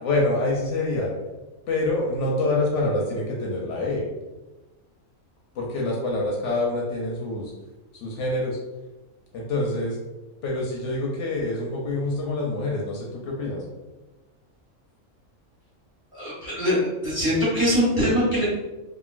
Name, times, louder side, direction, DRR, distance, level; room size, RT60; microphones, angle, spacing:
voice 1, 0.0-1.1 1.7-4.1 5.6-7.5 7.9-8.6 9.3-10.0 10.4-13.6, left 2 dB, 70° left, -2 dB, 0.8 m, -26 dB
voice 2, 16.1-18.4, equal, 25° right, -9 dB, 1.2 m, -22 dB
2.9 x 2.4 x 2.4 m, 1.1 s
omnidirectional pair, 1.4 m